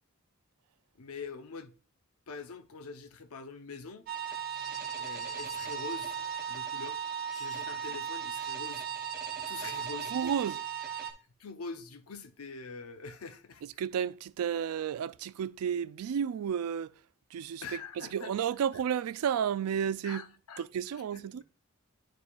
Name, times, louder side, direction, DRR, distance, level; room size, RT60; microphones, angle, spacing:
voice 1, 1.0-1.7 2.3-4.1 5.0-6.2 6.5-7.0 7.3-8.9 9.5-10.1 11.4-13.6 17.6-18.3 20.0-20.7 20.9-21.4, left 4 dB, 90° left, 0.7 m, -44 dB
sound 1, 4.1-11.1, right 7 dB, 45° right, 0.9 m, -37 dB
voice 2, 10.1-10.6 13.8-16.9 17.3-17.6 18.0-20.3 20.6-21.4, right 8 dB, 85° right, 0.3 m, -32 dB
10.0 x 4.6 x 2.3 m
head